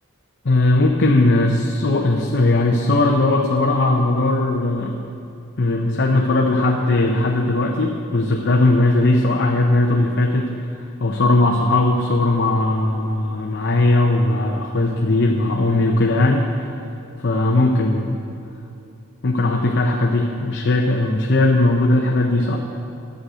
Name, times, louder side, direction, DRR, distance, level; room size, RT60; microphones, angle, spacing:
voice 1, 0.4-5.0 5.6-10.5 11.0-16.5 17.2-18.2 19.2-22.6, left 2 dB, 55° left, 1 dB, 0.7 m, -18 dB
11.5 x 6.4 x 8.1 m, 2.6 s
head